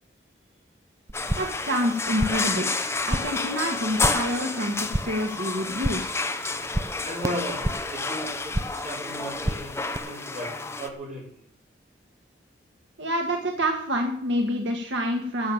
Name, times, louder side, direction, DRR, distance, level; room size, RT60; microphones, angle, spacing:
sound 1, 1.1-10.9, left 3 dB, 15° left, 0.8 m, -30 dB
sound 2, 1.1-1.7 1.9-2.6 2.8-3.5 3.7-4.3 4.6-5.3 5.6-6.2 6.5-8.0 8.3-8.9 9.2-10.0, right 1 dB, 15° right, 0.5 m, -31 dB
voice 1, 1.3-2.7 3.1-4.8 5.0-6.2 13.0-15.5, equal, 85° right, 2 dB, 1.8 m, -27 dB
voice 2, 7.0-11.3, equal, 40° right, -3 dB, 5.4 m, -36 dB
12.5 x 6.9 x 8.7 m, 0.63 s
head